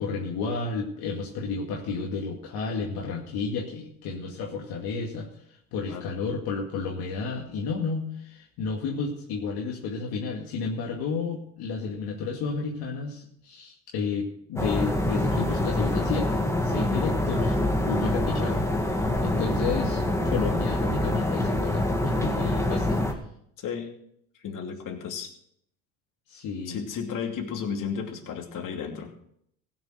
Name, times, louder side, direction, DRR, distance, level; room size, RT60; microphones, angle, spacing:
voice 1, 0.0-5.3 5.7-17.5 17.9-18.7 19.2-23.0 26.3-26.8, left 4 dB, 65° left, -1 dB, 2.3 m, -32 dB
sound 1, 14.6-23.1, left 1 dB, 5° left, 2.2 m, -25 dB
voice 2, 23.6-23.9 24.4-25.3 26.7-29.1, left 6 dB, 50° left, 2 dB, 2.8 m, -33 dB
16.0 x 7.2 x 6.5 m, 0.70 s
hypercardioid pair, 75°, 40 cm